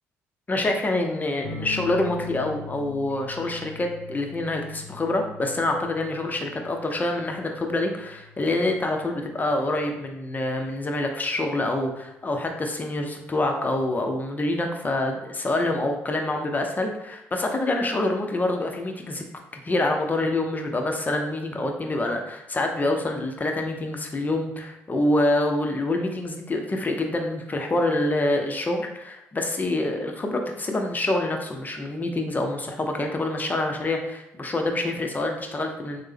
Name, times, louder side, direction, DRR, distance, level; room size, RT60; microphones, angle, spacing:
voice 1, 0.5-19.2 19.6-36.0, left 2 dB, 25° left, 3 dB, 0.6 m, -26 dB
sound 1, 1.4-10.5 12.0-12.5, left 5 dB, 80° left, 0.4 m, -42 dB
3.2 x 2.0 x 3.4 m, 0.85 s
hypercardioid pair, 55°, 7 cm